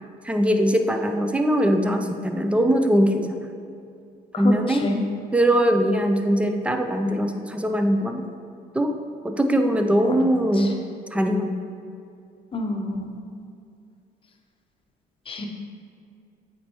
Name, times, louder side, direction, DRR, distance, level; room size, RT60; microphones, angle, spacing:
voice 1, 0.2-3.3 4.4-4.9 5.3-8.2 8.7-8.9 9.2-10.7 11.1-11.5, equal, 5° right, 5 dB, 0.4 m, -21 dB
voice 2, 4.3-5.0 10.0-10.2 10.6-10.7 12.5-13.2 15.3-15.5, left 2 dB, 30° left, 3 dB, 0.8 m, -28 dB
8.3 x 4.4 x 3.0 m, 2.4 s
cardioid pair, 110°, 17 cm